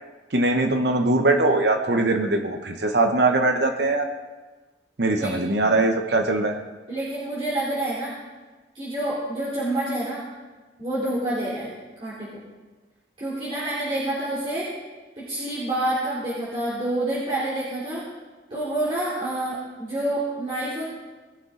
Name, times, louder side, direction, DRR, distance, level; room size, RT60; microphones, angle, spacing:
voice 1, 0.3-4.1 5.0-6.6, right 2 dB, 65° right, 5 dB, 1.0 m, -21 dB
voice 2, 6.9-8.2 8.7-10.2 10.8-11.7 12.0-12.4 13.2-14.7 15.2-18.0 18.5-20.9, right 1 dB, 30° right, -10 dB, 3.1 m, -28 dB
19.5 x 6.8 x 3.8 m, 1.3 s
head